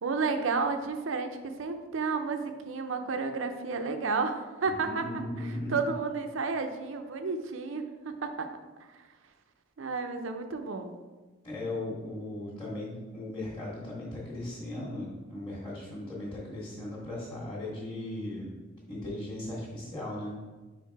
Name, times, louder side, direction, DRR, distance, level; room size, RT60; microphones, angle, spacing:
voice 1, 0.0-5.0 5.7-8.5 8.8-8.9 9.8-10.9, right 4 dB, 75° right, 7 dB, 0.6 m, -31 dB
voice 2, 4.8-5.9 11.4-18.5 18.9-20.4, left 1 dB, 20° left, -10 dB, 1.4 m, -37 dB
4.9 x 4.6 x 4.6 m, 1.3 s
head